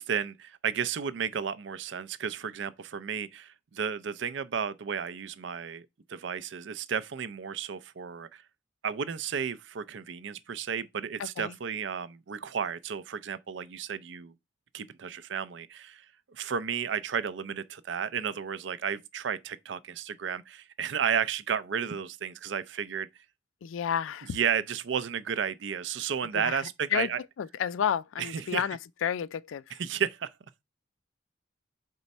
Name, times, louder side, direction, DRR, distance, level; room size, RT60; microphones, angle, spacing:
voice 1, 0.0-8.4 8.8-14.3 14.7-23.1 24.3-27.2 28.2-28.6 29.8-30.3, right 7 dB, 65° right, 0.5 m, -33 dB
voice 2, 11.2-11.5 23.6-24.4 26.3-27.1 27.4-29.8, left 8 dB, 80° left, 0.4 m, -31 dB
4.5 x 4.1 x 5.3 m
head